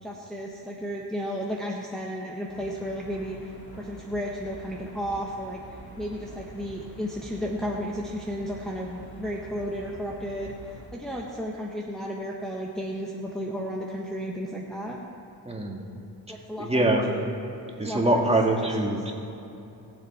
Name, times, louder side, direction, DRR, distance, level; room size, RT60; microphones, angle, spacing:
voice 1, 0.0-5.6 6.0-15.0 16.3-17.3 17.8-18.2 18.6-18.9, equal, ahead, -3 dB, 1.3 m, -33 dB
sound 1, 2.5-10.9, equal, 65° left, 3.3 m, -46 dB
voice 2, 15.5-15.8 16.6-17.1 17.8-19.1, right 1 dB, 15° right, 0 dB, 1.9 m, -24 dB
21.0 x 7.5 x 4.3 m, 2.9 s
cardioid pair, 85°, 40 cm